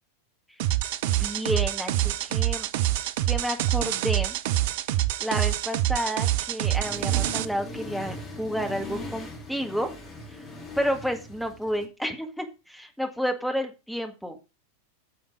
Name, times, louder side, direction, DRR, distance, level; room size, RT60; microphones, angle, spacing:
sound 1, 0.6-7.4, right 14 dB, 50° right, 0.6 m, -26 dB
voice 1, 1.0-2.7 3.3-4.4 5.2-9.9 10.3-10.4 10.8-14.4, equal, ahead, 4 dB, 1.7 m, -30 dB
Accelerating revving vroom, 6.6-11.8, left 1 dB, 25° left, 2.8 m, -40 dB
9.6 x 7.1 x 4.7 m, 0.29 s
figure-of-eight pair, 90°, 0 cm